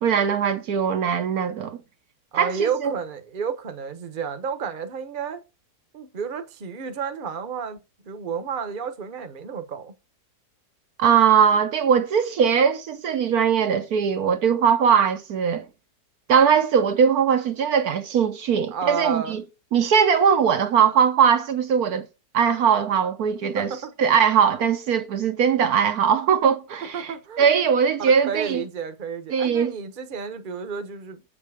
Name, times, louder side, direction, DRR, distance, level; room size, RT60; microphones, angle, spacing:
voice 1, 0.0-1.8 2.3-2.9 11.0-15.7 16.3-19.4 19.7-22.1 22.3-23.7 24.0-28.6 29.3-29.7, right 7 dB, 65° right, 1.3 m, -20 dB
voice 2, 2.3-5.4 5.9-9.9 18.7-19.4 23.4-24.2 26.9-27.5 28.0-31.2, right 6 dB, 35° right, 1.1 m, -31 dB
7.9 x 7.4 x 4.9 m
omnidirectional pair, 1.8 m